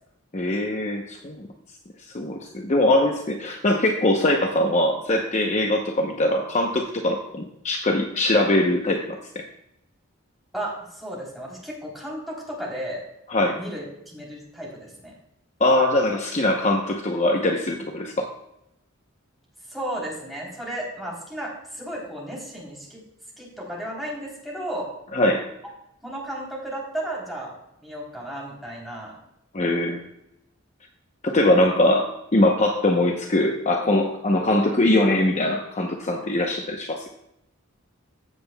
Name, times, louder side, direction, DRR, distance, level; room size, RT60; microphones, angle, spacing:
voice 1, 0.3-1.5 2.1-9.4 13.3-13.6 15.6-18.3 25.1-25.5 29.5-30.0 31.2-37.1, left 1 dB, 35° left, 3 dB, 0.8 m, -22 dB
voice 2, 10.5-13.0 13.6-15.1 19.7-23.0 23.4-24.9 26.0-27.5 27.8-29.1, right 1 dB, ahead, -4 dB, 3.2 m, -34 dB
15.0 x 7.6 x 2.2 m, 0.84 s
head